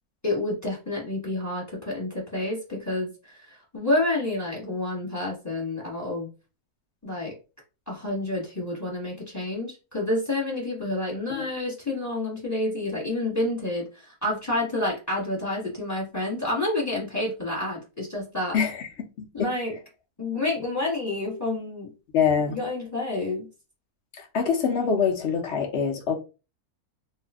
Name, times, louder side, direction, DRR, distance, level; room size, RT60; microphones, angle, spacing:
voice 1, 0.2-6.3 7.0-7.4 7.9-18.6 19.3-19.8 20.2-21.9 22.5-23.5, left 2 dB, 10° left, 1.2 m, -29 dB
voice 2, 18.5-18.9 19.4-19.5 22.1-22.6 24.1-26.1, left 6 dB, 55° left, 0.9 m, -24 dB
2.7 x 2.5 x 3.4 m
omnidirectional pair, 1.6 m